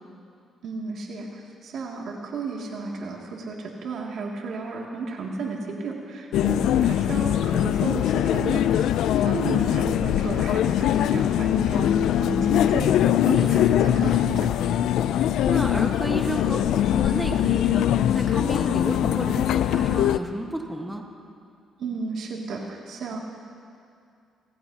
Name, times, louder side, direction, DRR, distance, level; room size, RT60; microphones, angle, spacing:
voice 1, 0.6-14.5 21.8-23.2, right 3 dB, 70° right, -1 dB, 2.5 m, -33 dB
sound 1, 6.3-20.2, left 11 dB, 80° left, 0.4 m, -22 dB
voice 2, 13.4-13.8 15.1-21.0, right 1 dB, 5° right, 2 dB, 1.5 m, -32 dB
30.0 x 15.5 x 2.9 m, 2.4 s
cardioid pair, 90°, 0 cm